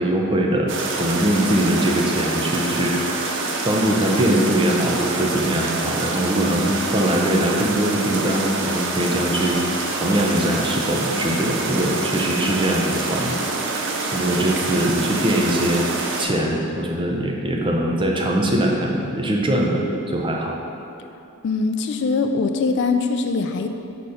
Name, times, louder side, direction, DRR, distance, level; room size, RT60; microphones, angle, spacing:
voice 1, 0.0-3.4 3.6-9.6 9.9-13.4 13.7-13.8 14.1-15.9 16.2-20.5, right 1 dB, 25° right, -1 dB, 0.6 m, -22 dB
sound 1, 0.7-16.2, right 3 dB, 60° right, 0.6 m, -26 dB
voice 2, 21.4-23.7, left 4 dB, 55° left, 7 dB, 0.3 m, -22 dB
5.4 x 4.4 x 5.0 m, 2.7 s
head